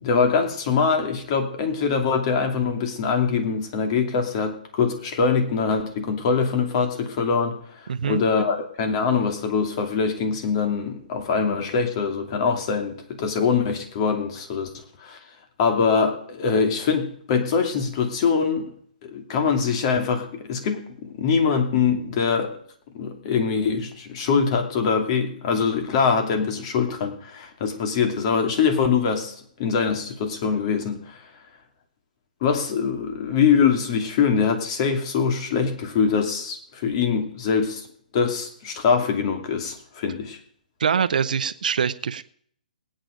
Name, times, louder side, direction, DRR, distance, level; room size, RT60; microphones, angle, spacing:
voice 1, 0.0-14.7 15.0-15.2 15.6-18.7 19.0-22.5 22.9-31.2 32.4-37.9 38.1-40.4, left 5 dB, 40° left, 5 dB, 2.6 m, -23 dB
voice 2, 7.9-8.2 40.8-42.2, right 7 dB, 70° right, 12 dB, 0.8 m, -24 dB
19.5 x 9.0 x 5.1 m, 0.63 s
hypercardioid pair, 140°, 5 cm